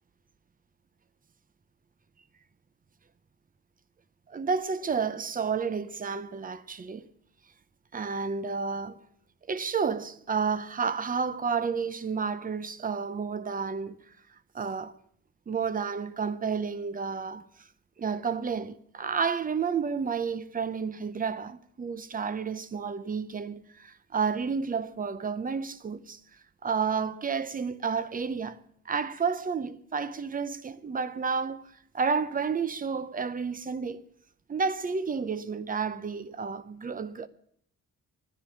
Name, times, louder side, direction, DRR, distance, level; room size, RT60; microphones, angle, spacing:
voice 1, 4.3-7.1 7.9-9.0 9.5-14.0 14.5-14.9 15.5-17.7 18.0-26.2 26.6-28.6 28.9-34.0 34.5-37.3, right 5 dB, 25° right, 0.6 m, -31 dB
11.5 x 10.0 x 8.5 m
wide cardioid pair, 180°, 34 cm